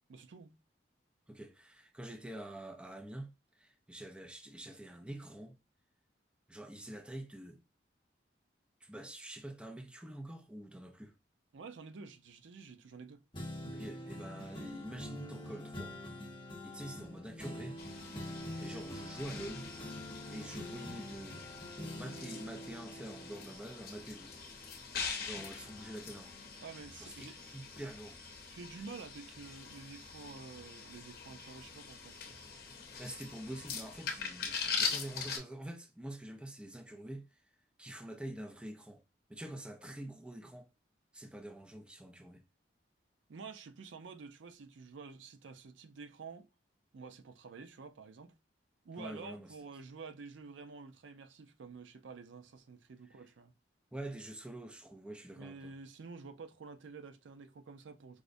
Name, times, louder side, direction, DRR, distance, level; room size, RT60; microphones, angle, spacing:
voice 1, 0.1-0.5 11.5-13.2 26.6-27.4 28.5-32.4 43.3-46.5 46.9-48.3 48.8-53.5 55.4-58.2, right 4 dB, 85° right, 0.5 m, -49 dB
voice 2, 1.3-5.6 6.5-7.6 8.8-11.1 13.7-16.0 16.6-17.8 18.6-19.7 20.3-21.4 21.9-24.3 25.2-26.3 27.0-28.2 32.8-37.4 37.8-39.0 39.3-40.7 41.1-42.4 49.0-49.5 53.1-53.2 53.9-55.7, right 1 dB, 5° right, 0.4 m, -46 dB
sound 1, 13.3-25.0 25.3-27.2 27.7-27.8, left 1 dB, 25° left, 0.8 m, -46 dB
sound 2, 17.8-35.4, left 5 dB, 55° left, 0.7 m, -43 dB
4.8 x 2.1 x 2.5 m
head